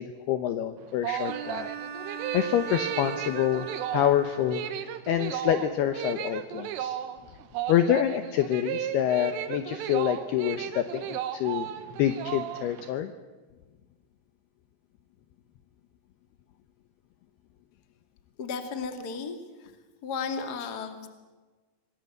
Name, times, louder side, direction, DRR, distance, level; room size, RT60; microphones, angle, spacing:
voice 1, 0.0-1.7 2.3-3.7 3.9-7.0 7.7-11.7 12.0-13.1, left 11 dB, 75° left, 10 dB, 2.4 m, -27 dB
sound 1, 0.8-12.9, right 11 dB, 85° right, 3.9 m, -34 dB
Bowed string instrument, 1.3-5.0, right 6 dB, 50° right, 3.3 m, -40 dB
voice 2, 18.4-19.7 20.0-21.1, left 5 dB, 40° left, 7 dB, 1.4 m, -34 dB
26.5 x 20.5 x 7.9 m, 1.3 s
omnidirectional pair, 5.6 m